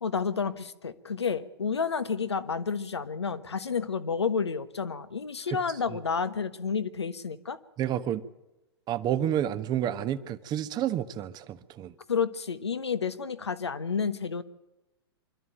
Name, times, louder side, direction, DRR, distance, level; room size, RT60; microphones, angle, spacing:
voice 1, 0.0-7.6 12.1-14.4, left 6 dB, 85° left, 13 dB, 1.3 m, -30 dB
voice 2, 7.8-8.3 8.9-11.9, right 10 dB, 30° right, 13 dB, 1.2 m, -30 dB
25.5 x 12.5 x 9.1 m, 0.97 s
hypercardioid pair, 110°, 14 cm